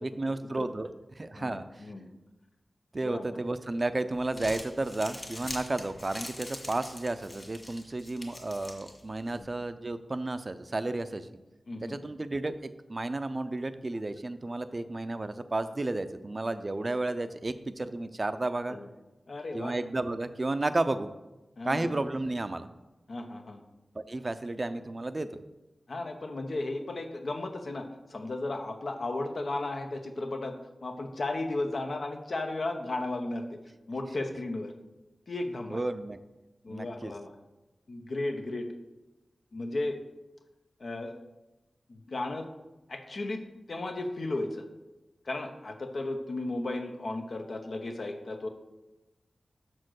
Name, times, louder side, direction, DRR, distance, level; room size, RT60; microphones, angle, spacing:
voice 1, 0.0-0.9 1.2-1.8 2.9-11.3 11.8-18.8 19.5-21.1 21.6-22.7 23.9-25.3 35.7-36.2 36.7-37.1, right 2 dB, 40° right, 11 dB, 0.5 m, -32 dB
voice 2, 1.3-2.1 3.0-3.4 9.3-9.5 11.1-11.2 11.7-12.0 18.7-18.9 19.3-19.7 21.6-21.9 23.1-23.6 25.9-30.5 30.8-33.6 33.9-34.7 35.3-35.8 36.6-37.3 37.9-38.7 39.5-40.0 40.8-41.1 41.9-42.5 42.9-43.4 43.7-44.7 45.2-48.5, left 2 dB, 70° left, 5 dB, 0.9 m, -35 dB
Crumpling crinkling, 4.1-9.4, left 1 dB, 35° left, 2.0 m, -44 dB
6.4 x 4.4 x 6.4 m, 1.0 s
cardioid pair, 50°, 0 cm